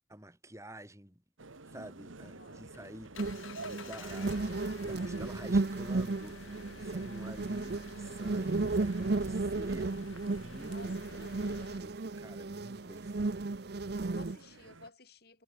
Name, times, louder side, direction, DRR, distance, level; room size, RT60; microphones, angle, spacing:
voice 1, 0.1-1.2 1.7-4.6 4.8-9.9 10.3-11.0 11.4-13.5, right 1 dB, 15° right, 7.4 m, -50 dB
sound 1, 1.4-14.9, right 3 dB, 85° right, 1.6 m, -52 dB
voice 2, 2.2-2.6 10.6-11.7 14.0-15.4, left 2 dB, 50° left, 5.8 m, -54 dB
Engine, 2.3-11.8, left 4 dB, 90° left, 1.4 m, -51 dB
sound 2, 3.2-14.4, right 3 dB, 55° right, 0.6 m, -34 dB
head